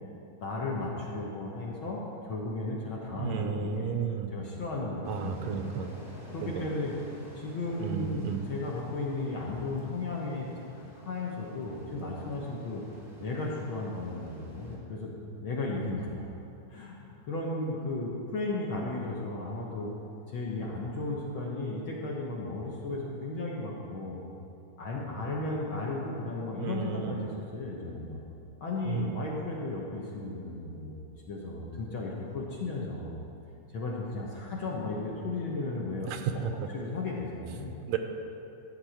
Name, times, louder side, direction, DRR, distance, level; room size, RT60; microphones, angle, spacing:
voice 1, 0.4-3.9 4.3-5.6 6.3-6.9 7.3-12.8 13.2-15.2 15.4-16.3 16.7-19.9 20.3-24.2 24.8-28.2 28.6-31.0 31.2-33.2 33.7-36.1 36.3-36.5 36.7-37.7, left 2 dB, 55° left, -3 dB, 1.5 m, -35 dB
voice 2, 3.1-4.3 5.1-5.9 6.4-6.7 7.8-8.5 26.6-27.3 28.8-29.2 36.1-36.5 37.9-38.0, right 7 dB, 80° right, 6 dB, 1.9 m, -33 dB
sound 1, 5.0-14.8, equal, 10° left, 1.4 m, -50 dB
13.0 x 4.6 x 7.9 m, 2.8 s
omnidirectional pair, 3.3 m